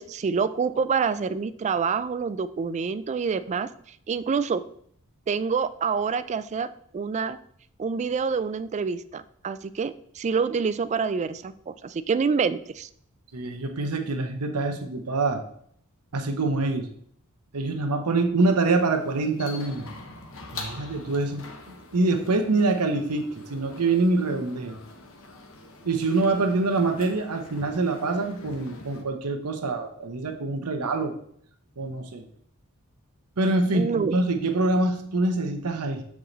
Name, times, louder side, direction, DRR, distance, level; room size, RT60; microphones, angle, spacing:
voice 1, 0.0-4.6 5.3-7.4 7.8-12.9 33.7-34.1, right 5 dB, 30° right, 15 dB, 0.3 m, -27 dB
voice 2, 13.3-15.4 16.1-16.9 17.5-19.9 20.5-24.8 25.8-31.1 31.8-32.2 33.4-36.0, right 3 dB, 90° right, 5 dB, 0.9 m, -25 dB
sound 1, 18.8-29.0, left 3 dB, 65° left, 1.0 m, -44 dB
7.3 x 4.8 x 3.9 m, 0.65 s
head